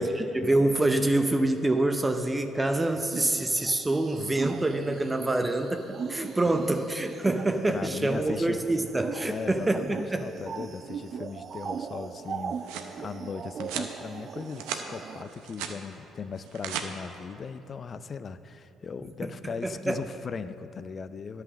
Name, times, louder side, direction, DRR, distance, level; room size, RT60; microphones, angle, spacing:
voice 1, 0.0-10.3 19.4-20.0, right 2 dB, 20° right, 6 dB, 0.7 m, -26 dB
sound 1, 3.0-15.2, right 6 dB, 50° right, 0.3 m, -40 dB
voice 2, 7.7-8.6 9.3-21.4, left 5 dB, 45° left, 13 dB, 0.4 m, -38 dB
sound 2, 12.3-12.9 13.6-13.9 14.4-14.9 15.2-15.8 16.4-16.9, right 8 dB, 85° right, 0.7 m, -36 dB
10.5 x 5.8 x 7.4 m, 2.9 s
supercardioid pair, 70°, 0 cm